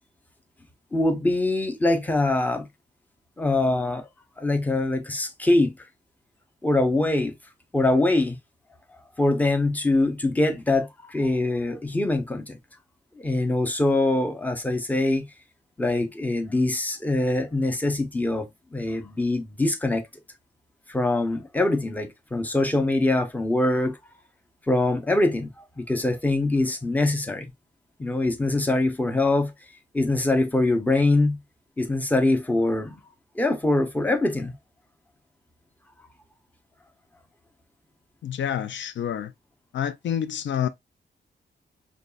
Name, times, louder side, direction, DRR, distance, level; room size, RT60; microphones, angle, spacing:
voice 1, 0.9-2.7 3.4-4.1 4.4-5.8 6.6-7.3 7.7-8.4 9.2-12.6 13.1-15.3 15.8-20.1 20.9-24.0 24.7-27.5 28.0-29.5 29.9-31.4 31.8-33.0 33.4-34.5, left 2 dB, 10° left, 0.6 m, -23 dB
voice 2, 38.2-39.3 39.7-40.7, left 9 dB, 75° left, 0.4 m, -28 dB
5.2 x 2.3 x 2.3 m
wide cardioid pair, 135°, 19 cm